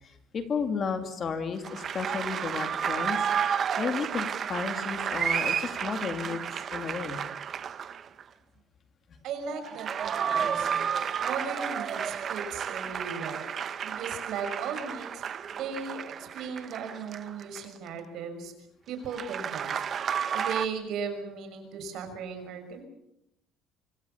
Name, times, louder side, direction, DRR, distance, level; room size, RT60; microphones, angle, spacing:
voice 1, 0.0-3.2 3.8-6.4 6.7-7.2, left 5 dB, 30° left, 7 dB, 2.3 m, -33 dB
sound 1, 1.6-8.2 9.5-17.9 19.1-20.7, right 8 dB, 30° right, 1.0 m, -32 dB
voice 2, 9.2-10.9 11.2-13.5 13.8-15.2 15.5-18.5 18.9-19.8 20.3-22.8, right 6 dB, 55° right, 7 dB, 6.3 m, -37 dB
25.5 x 25.5 x 7.0 m, 0.80 s
cardioid pair, 175°, 0 cm